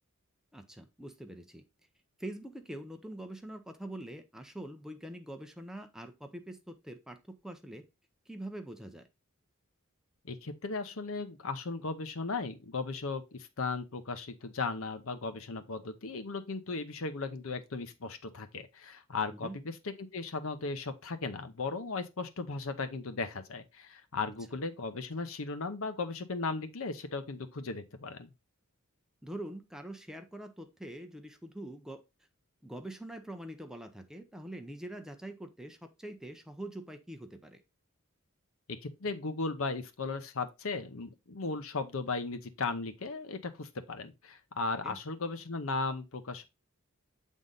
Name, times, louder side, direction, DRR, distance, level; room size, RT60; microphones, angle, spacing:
voice 1, 0.5-1.6 2.2-7.8 8.3-9.1 19.3-19.6 29.2-32.0 32.6-37.6 44.8-45.0, right 1 dB, 5° right, 0.6 m, -44 dB
voice 2, 10.2-28.3 39.0-46.4, left 3 dB, 70° left, 0.8 m, -36 dB
7.7 x 3.7 x 3.9 m
head